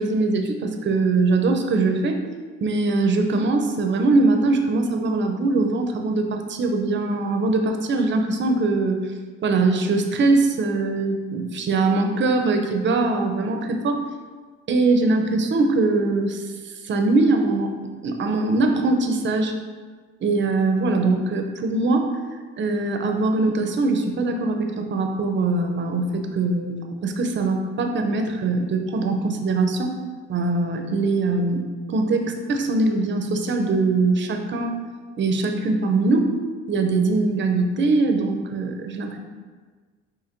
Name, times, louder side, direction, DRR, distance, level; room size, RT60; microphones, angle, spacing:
voice 1, 0.0-2.2 2.6-9.0 9.4-14.0 14.7-17.7 18.0-19.5 20.2-22.1 22.6-26.8 27.0-30.0 30.3-31.6 31.9-34.7 35.2-36.3 36.7-39.2, right 3 dB, 40° right, 4 dB, 0.5 m, -22 dB
4.3 x 2.7 x 2.5 m, 1.4 s
cardioid pair, 90°, 30 cm